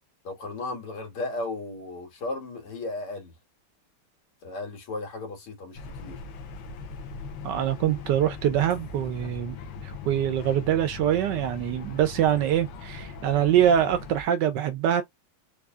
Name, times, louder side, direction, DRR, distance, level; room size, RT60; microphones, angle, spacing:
voice 1, 0.2-3.3 4.4-6.2, left 2 dB, 90° left, 2.3 m, -35 dB
sound 1, 5.8-14.2, left 4 dB, 70° left, 1.3 m, -40 dB
voice 2, 7.4-9.6 9.8-15.0, right 10 dB, 75° right, 1.0 m, -24 dB
4.7 x 2.7 x 2.4 m
omnidirectional pair, 2.4 m